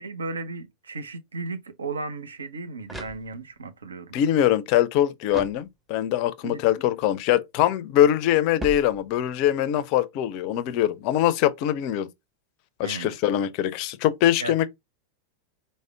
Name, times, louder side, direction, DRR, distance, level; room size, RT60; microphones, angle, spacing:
voice 1, 0.0-4.2 6.4-6.6 12.8-13.2 14.4-14.6, right 3 dB, 70° right, 0.6 m, -35 dB
sound 1, 2.8-3.7 5.3-6.2 8.6-9.5, right 1 dB, 10° right, 0.8 m, -40 dB
voice 2, 4.1-12.1 12.8-14.7, left 11 dB, 45° left, 0.4 m, -23 dB
4.8 x 2.1 x 3.4 m
figure-of-eight pair, 90°, 0 cm